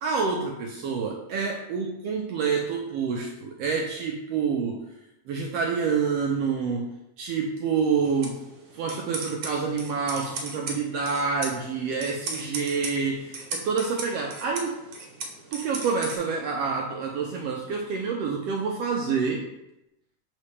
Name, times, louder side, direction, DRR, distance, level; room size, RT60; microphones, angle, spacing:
voice 1, 0.0-4.8 5.3-8.4 8.7-14.8 15.5-19.5, right 5 dB, 80° right, 0 dB, 1.4 m, -27 dB
sound 1, 8.0-16.2, right 3 dB, 65° right, 1.7 m, -38 dB
7.4 x 4.1 x 3.3 m, 0.88 s
omnidirectional pair, 3.4 m